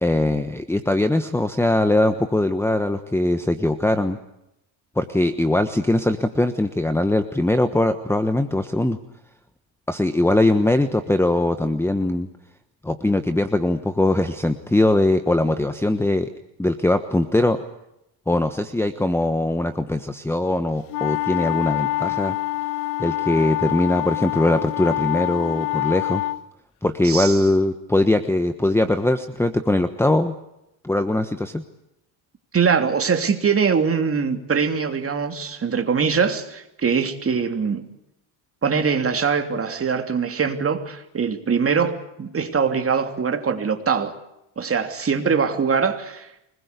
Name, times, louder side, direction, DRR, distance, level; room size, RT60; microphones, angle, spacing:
voice 1, 0.0-4.2 5.0-9.0 9.9-12.3 12.8-16.3 16.6-17.6 18.3-22.4 23.0-26.2 26.8-30.3 30.8-31.6, left 1 dB, 5° left, 9 dB, 1.2 m, -21 dB
sound 1, 20.9-26.4, left 17 dB, 80° left, 1.2 m, -26 dB
voice 2, 27.0-27.4 32.5-37.8 38.6-44.1 44.6-46.3, right 6 dB, 25° right, 6 dB, 3.1 m, -22 dB
25.5 x 20.5 x 8.3 m, 0.82 s
cardioid pair, 130°, 50 cm